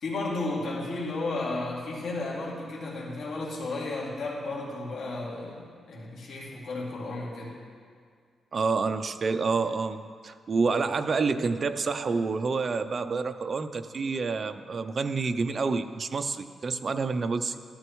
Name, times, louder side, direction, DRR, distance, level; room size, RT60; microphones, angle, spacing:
voice 1, 0.0-7.5, left 2 dB, 70° left, -4 dB, 2.5 m, -33 dB
voice 2, 8.5-17.6, right 4 dB, 35° right, 9 dB, 0.4 m, -28 dB
13.0 x 12.5 x 3.1 m, 2.1 s
wide cardioid pair, 150°, 0 cm